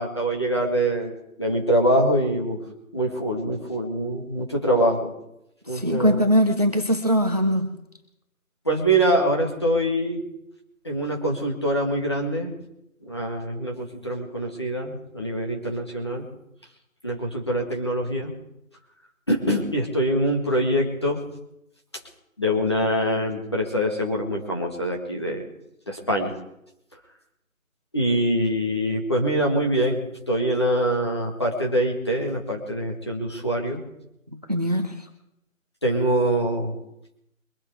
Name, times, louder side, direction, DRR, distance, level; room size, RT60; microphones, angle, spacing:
voice 1, 0.0-2.6 2.9-5.1 5.7-6.2 8.7-10.2 10.8-12.5 13.0-16.2 17.0-18.3 19.3-21.2 22.4-25.5 25.9-26.4 27.9-33.8 35.8-36.7, right 1 dB, 20° left, 0 dB, 1.9 m, -24 dB
voice 2, 5.7-7.8 34.5-35.0, equal, 30° right, 6 dB, 1.1 m, -21 dB
23.5 x 8.4 x 4.9 m, 0.81 s
figure-of-eight pair, 175°, 42 cm